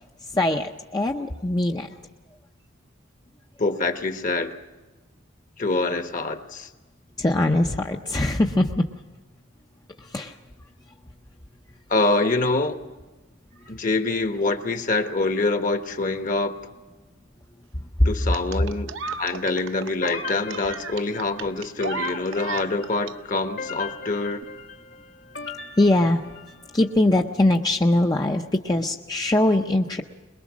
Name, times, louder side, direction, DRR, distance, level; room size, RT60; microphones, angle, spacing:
voice 1, 0.3-1.9 7.2-8.8 10.1-10.3 18.0-18.1 25.8-26.2 26.7-30.0, left 1 dB, 20° left, 2 dB, 0.6 m, -21 dB
voice 2, 3.6-4.5 5.6-6.7 11.9-12.8 13.7-16.6 18.0-18.9 19.2-24.4, left 3 dB, 40° left, 8 dB, 1.2 m, -25 dB
sound 1, 18.3-23.1 24.3-24.4, right 5 dB, 75° right, 0.7 m, -34 dB
sound 2, 20.0-26.9, left 5 dB, 60° left, 1.9 m, -39 dB
23.0 x 21.5 x 6.2 m, 1.2 s
head